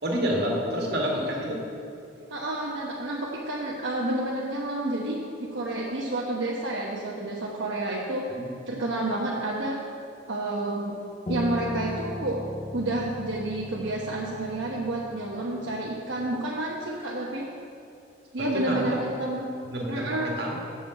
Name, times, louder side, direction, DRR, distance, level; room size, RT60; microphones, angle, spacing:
voice 1, 0.0-1.6 8.3-8.5 18.4-18.8 19.6-20.6, equal, 55° right, -2 dB, 1.9 m, -28 dB
voice 2, 2.3-8.3 8.7-9.8 10.3-10.9 11.3-12.4 12.7-17.4 18.3-19.5 19.9-20.3, right 1 dB, 75° right, -4 dB, 1.1 m, -30 dB
Piano, 11.3-16.5, left 1 dB, 30° left, 0.5 m, -37 dB
7.5 x 7.2 x 7.5 m, 2.6 s
head